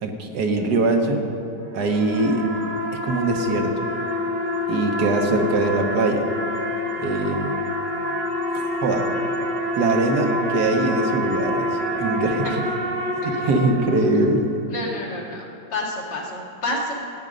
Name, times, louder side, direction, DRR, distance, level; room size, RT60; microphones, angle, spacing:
voice 1, 0.0-1.3 1.7-2.4 3.0-3.7 4.7-6.2 7.0-7.6 8.5-9.1 9.8-11.7 12.0-12.5 13.2-14.4, right 2 dB, 65° right, 2 dB, 1.7 m, -22 dB
sound 1, 1.6-14.4, left 1 dB, 30° right, 1.3 m, -27 dB
voice 2, 14.7-16.9, left 2 dB, 75° left, -3 dB, 2.7 m, -29 dB
17.0 x 8.9 x 5.3 m, 2.7 s
omnidirectional pair, 1.9 m